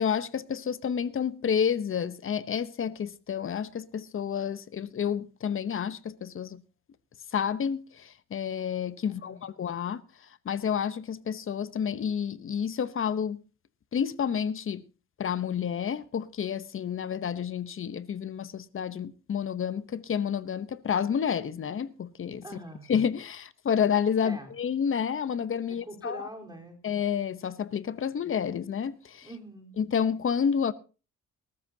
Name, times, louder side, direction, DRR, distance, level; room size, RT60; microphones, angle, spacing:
voice 1, 0.0-6.6 7.3-10.0 10.4-13.4 13.9-14.8 15.2-22.4 22.9-26.3 26.8-29.3 29.8-30.7, left 7 dB, 45° left, 0.9 m, -30 dB
voice 2, 9.1-9.5 22.4-22.9 24.2-24.5 25.7-26.8 29.2-29.8, right 1 dB, 15° right, 3.9 m, -44 dB
20.5 x 13.5 x 2.8 m
cardioid pair, 90°, 30 cm